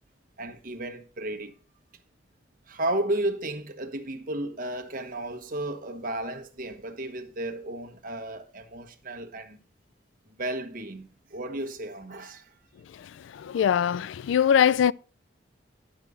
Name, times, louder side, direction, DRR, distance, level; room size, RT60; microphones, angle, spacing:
voice 1, 0.4-1.5 2.7-9.6 10.4-12.5, right 1 dB, 50° right, 1.2 m, -33 dB
voice 2, 13.4-14.9, left 8 dB, 85° left, 0.3 m, -22 dB
11.0 x 4.9 x 5.4 m
head